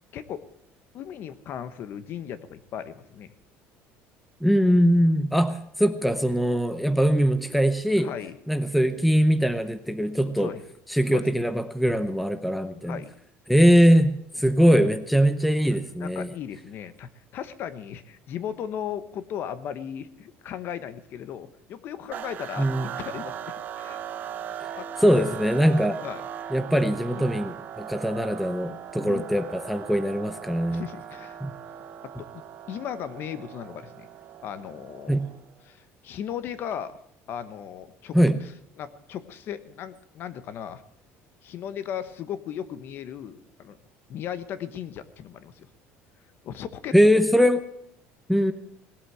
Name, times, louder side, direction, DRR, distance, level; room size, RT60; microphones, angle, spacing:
voice 1, 0.1-0.4 0.9-3.3 8.0-8.4 10.4-10.6 11.1-11.2 12.8-13.1 15.7-24.0 24.8-25.1 26.0-26.2 27.1-27.4 29.0-29.3 30.7-31.4 32.0-32.4 32.7-34.1 34.4-35.2 35.6-37.0 37.3-38.5 38.8-40.8 41.4-43.8 44.1-45.7 46.4-46.9, left 9 dB, 45° left, 14 dB, 1.0 m, -37 dB
voice 2, 4.4-8.1 8.5-10.5 10.9-13.0 13.5-16.3 22.6-22.9 25.0-26.0 26.5-30.8 31.4-31.5 35.1-35.3 38.1-38.4 46.9-47.6 48.3-48.5, equal, ahead, 11 dB, 0.7 m, -21 dB
sound 1, 22.1-35.5, right 9 dB, 35° right, 1.0 m, -39 dB
18.5 x 8.2 x 9.1 m, 0.70 s
cardioid pair, 160°, 5 cm